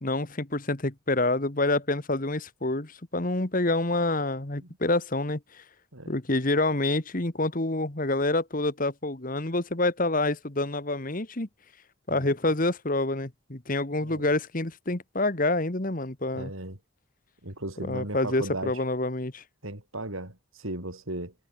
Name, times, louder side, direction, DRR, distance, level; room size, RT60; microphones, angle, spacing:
voice 1, 0.0-5.6 6.1-11.5 12.1-16.5 17.9-19.4, left 2 dB, 40° left, 1.6 m, -27 dB
voice 2, 16.3-16.8 17.4-18.8 19.6-21.3, right 1 dB, 80° right, 5.8 m, -36 dB
head